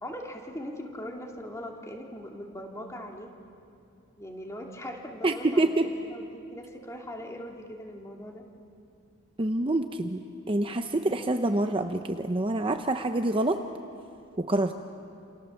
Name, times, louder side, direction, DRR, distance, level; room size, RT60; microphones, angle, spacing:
voice 1, 0.0-3.3 4.2-8.4, equal, 15° left, 1 dB, 2.7 m, -40 dB
voice 2, 5.2-5.9 9.4-10.2 10.5-13.6 14.4-14.7, right 2 dB, 25° right, 6 dB, 0.8 m, -26 dB
29.0 x 28.5 x 7.2 m, 2.6 s
head